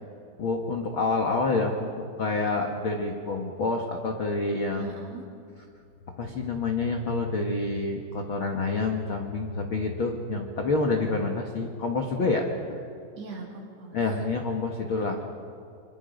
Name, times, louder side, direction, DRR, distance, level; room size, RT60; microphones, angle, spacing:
voice 1, 0.4-4.9 6.2-12.8 13.9-15.2, left 3 dB, 70° left, 2 dB, 1.2 m, -28 dB
voice 2, 4.8-5.3 13.2-14.0 14.9-15.2, right 3 dB, 40° right, 0 dB, 3.8 m, -41 dB
26.5 x 26.5 x 5.3 m, 2.5 s
omnidirectional pair, 4.9 m